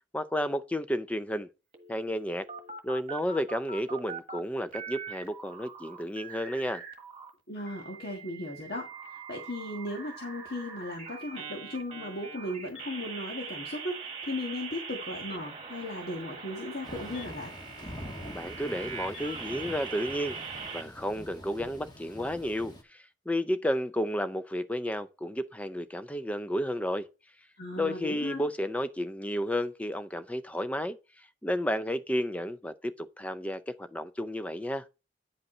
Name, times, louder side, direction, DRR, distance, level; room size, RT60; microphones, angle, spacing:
voice 1, 0.1-1.5 1.9-2.5 2.8-6.8 18.3-20.4 20.7-27.1 27.8-31.0 31.4-34.8, equal, 10° left, 0.5 m, -32 dB
sound 1, 1.7-4.4 4.7-7.3 7.7-20.8, right 5 dB, 30° right, 1.4 m, -42 dB
voice 2, 7.5-17.5 27.6-28.4, left 1 dB, 60° left, 1.6 m, -37 dB
Thunder / Rain, 16.8-22.8, equal, 25° left, 1.2 m, -45 dB
9.6 x 5.2 x 4.3 m
head